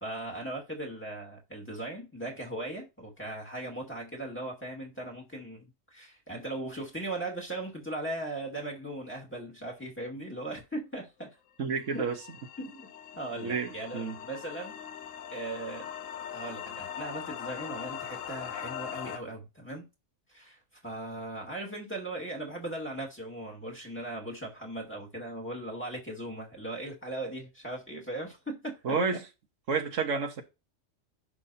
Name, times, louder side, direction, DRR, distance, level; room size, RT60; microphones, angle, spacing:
voice 1, 0.0-11.4 11.9-12.1 12.6-12.9 13.2-14.8 15.3-15.9 16.3-19.9 20.3-29.2, right 1 dB, 10° left, 2.1 m, -38 dB
voice 2, 11.6-12.2 13.4-14.2 28.8-29.2 29.7-30.4, right 5 dB, 80° right, 1.5 m, -30 dB
sound 1, 11.9-19.2, left 9 dB, 90° left, 1.1 m, -41 dB
11.0 x 6.0 x 2.9 m
omnidirectional pair, 1.3 m